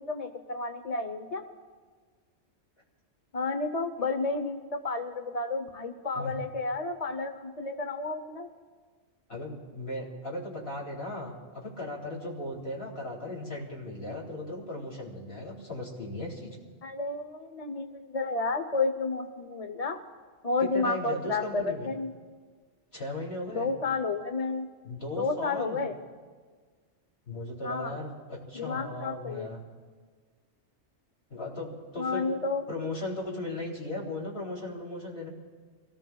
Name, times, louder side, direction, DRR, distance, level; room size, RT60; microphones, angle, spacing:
voice 1, 0.0-1.4 3.3-8.5 16.8-20.0 20.4-22.1 23.5-24.7 25.2-26.0 27.6-28.0 28.5-29.5 32.0-32.6, left 3 dB, 40° left, 6 dB, 0.7 m, -31 dB
voice 2, 9.3-16.6 20.7-21.9 22.9-23.7 24.8-25.8 27.3-29.6 31.3-32.3 32.7-35.3, left 1 dB, 60° left, -3 dB, 3.2 m, -37 dB
29.5 x 18.5 x 2.3 m, 1.5 s
omnidirectional pair, 1.2 m